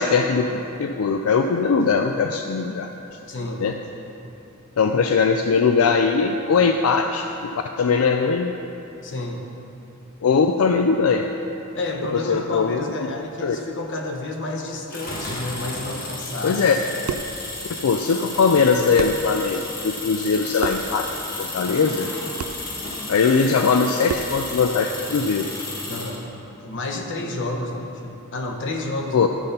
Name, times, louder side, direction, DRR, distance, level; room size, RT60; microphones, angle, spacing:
voice 1, 0.0-2.9 3.6-3.7 4.8-8.5 10.2-11.3 12.1-12.8 13.4-13.6 16.4-16.8 17.8-22.1 23.1-25.5 29.1-29.3, left 5 dB, 85° left, 5 dB, 0.4 m, -20 dB
voice 2, 3.3-3.6 9.0-9.4 11.7-16.7 25.9-29.3, left 2 dB, 60° left, 2 dB, 1.0 m, -30 dB
sound 1, 14.9-26.2, left 2 dB, 45° left, 1.7 m, -33 dB
sound 2, 17.1-17.4 18.6-18.7 19.0-19.3 20.6-20.9 22.4-22.6 24.1-24.4, right 6 dB, 75° right, 0.4 m, -30 dB
11.5 x 5.7 x 5.3 m, 3.0 s
head